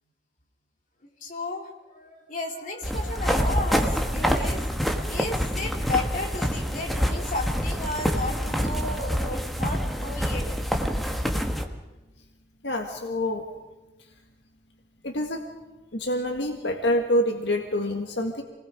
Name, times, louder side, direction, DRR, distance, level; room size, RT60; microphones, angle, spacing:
voice 1, 1.2-4.6 5.1-10.7, left 2 dB, 50° left, 0 dB, 3.6 m, -33 dB
sound 1, 2.8-11.6, equal, ahead, 1.5 m, -26 dB
voice 2, 12.6-13.4 15.0-15.5 15.9-18.4, left 1 dB, 90° left, 3 dB, 1.8 m, -26 dB
28.0 x 19.5 x 5.1 m, 1.1 s
head